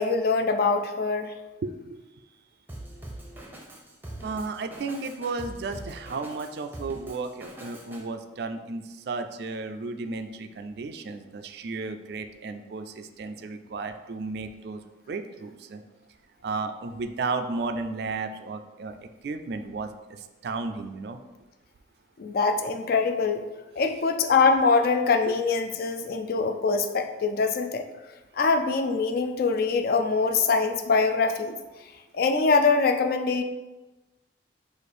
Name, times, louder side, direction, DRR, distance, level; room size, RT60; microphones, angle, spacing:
voice 1, 0.0-1.3 22.2-23.4 23.8-27.9 28.4-31.6 32.1-33.4, left 4 dB, 50° left, 7 dB, 0.3 m, -23 dB
voice 2, 1.6-2.0 4.2-14.8 15.1-15.8 16.4-18.9 19.2-21.2 25.3-25.4, right 3 dB, 55° right, 8 dB, 0.3 m, -34 dB
Drum kit, 2.7-8.0, right 1 dB, 10° right, 0.6 m, -42 dB
4.9 x 2.5 x 4.2 m, 1.1 s
head